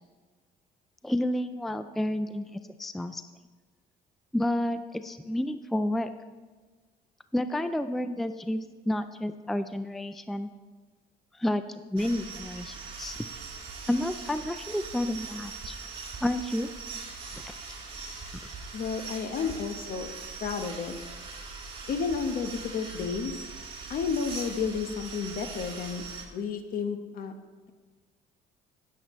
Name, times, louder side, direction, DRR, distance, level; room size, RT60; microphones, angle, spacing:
voice 1, 1.0-3.2 4.3-6.1 7.3-10.5 11.3-13.2 13.9-15.8 16.2-16.7 17.3-17.5, left 1 dB, ahead, 10 dB, 0.4 m, -30 dB
sound 1, 12.0-26.2, right 4 dB, 35° right, 2.5 m, -41 dB
voice 2, 18.7-20.1 20.4-20.9 21.9-23.5 23.9-26.0 26.3-27.3, left 5 dB, 60° left, 7 dB, 1.1 m, -31 dB
17.0 x 7.4 x 3.1 m, 1.4 s
cardioid pair, 110°, 17 cm